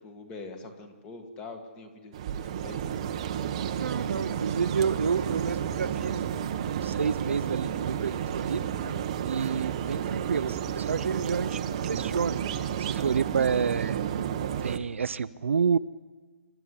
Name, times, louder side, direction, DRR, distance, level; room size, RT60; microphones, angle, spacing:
voice 1, 0.0-2.8, left 3 dB, 10° left, 6 dB, 1.8 m, -44 dB
sound 1, 2.1-14.8, right 9 dB, 25° right, 0.9 m, -31 dB
voice 2, 3.8-6.3 6.6-9.0 9.2-14.0 14.6-15.8, right 6 dB, 55° right, 14 dB, 0.7 m, -29 dB
27.5 x 13.0 x 10.0 m, 1.4 s
hypercardioid pair, 175°, 8 cm